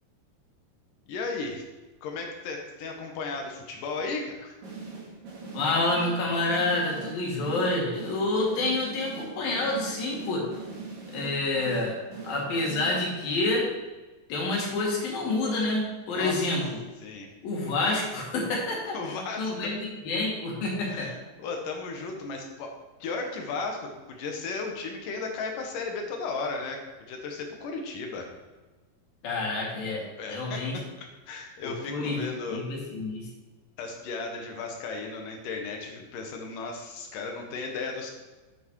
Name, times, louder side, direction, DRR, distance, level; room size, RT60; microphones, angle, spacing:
voice 1, 1.1-1.6 2.0-4.6 16.1-16.6 17.0-17.3 18.9-19.7 20.9-28.3 30.2-32.6 33.8-38.1, left 4 dB, 75° left, 2 dB, 2.8 m, -35 dB
sound 1, 4.6-13.4, right 4 dB, 80° right, 3.6 m, -41 dB
voice 2, 5.5-10.5 11.1-12.0 12.2-13.7 14.3-16.8 17.4-19.0 19.4-21.1 29.2-30.7 31.9-32.2 32.5-33.3, left 2 dB, 90° left, -2 dB, 3.8 m, -28 dB
9.3 x 6.3 x 4.7 m, 1.2 s
omnidirectional pair, 3.9 m